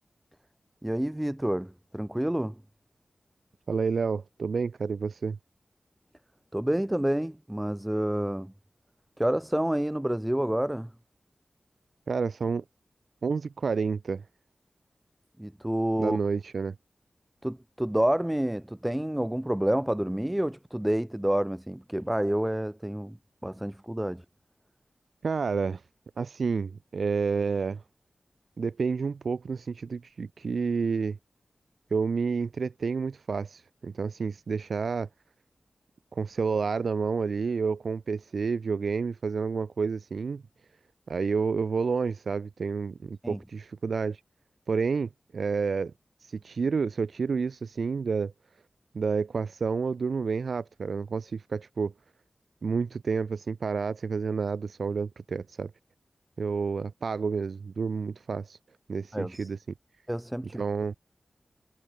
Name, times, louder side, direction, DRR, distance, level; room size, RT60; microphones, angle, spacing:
voice 1, 0.8-2.5 6.5-8.5 9.2-10.9 15.4-16.2 17.4-23.2 23.4-24.2 43.2-43.4 59.1-59.5 60.1-60.6, right 1 dB, 10° right, 1.3 m, -28 dB
voice 2, 3.7-5.4 12.1-12.6 13.2-14.2 16.0-16.7 25.2-25.8 26.2-27.8 28.6-31.2 31.9-35.1 36.1-40.4 41.1-44.2 44.7-45.9 46.2-48.3 48.9-51.9 52.6-55.7 56.4-58.6 58.9-59.6 60.5-60.9, right 5 dB, 85° right, 5.0 m, -29 dB
wide cardioid pair, 85°, 0 cm